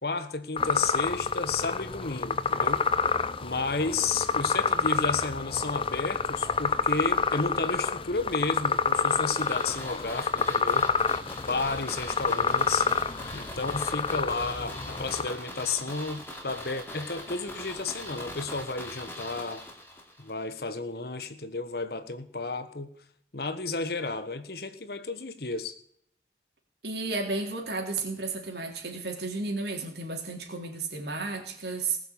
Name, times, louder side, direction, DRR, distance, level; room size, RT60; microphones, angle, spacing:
voice 1, 0.0-2.9 3.4-10.9 11.4-12.9 13.3-19.6 20.2-22.9 23.3-25.8, left 3 dB, 60° left, 1.3 m, -32 dB
sound 1, 0.6-15.3, left 5 dB, 30° left, 0.5 m, -28 dB
sound 2, 9.4-20.3 20.6-20.7, left 1 dB, 15° left, 2.7 m, -41 dB
voice 2, 26.8-32.0, right 3 dB, 70° right, 3.9 m, -33 dB
19.5 x 6.7 x 8.5 m
head